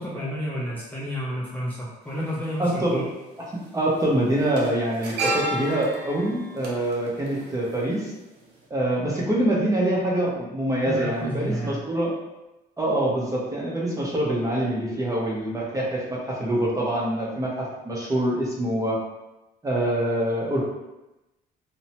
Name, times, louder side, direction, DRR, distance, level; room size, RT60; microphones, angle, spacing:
voice 1, 0.0-3.0 10.9-11.8, equal, 10° left, -7 dB, 0.5 m, -30 dB
sound 1, 2.0-2.1 3.4-3.6 3.9-8.2 8.5-8.6, right 1 dB, 80° right, 0.6 m, -32 dB
voice 2, 2.6-3.0 3.7-8.1 8.7-12.1 12.8-19.0 19.6-20.6, right 1 dB, 20° right, -4 dB, 0.8 m, -25 dB
2.7 x 2.1 x 2.8 m, 0.98 s
cardioid pair, 110°, 17 cm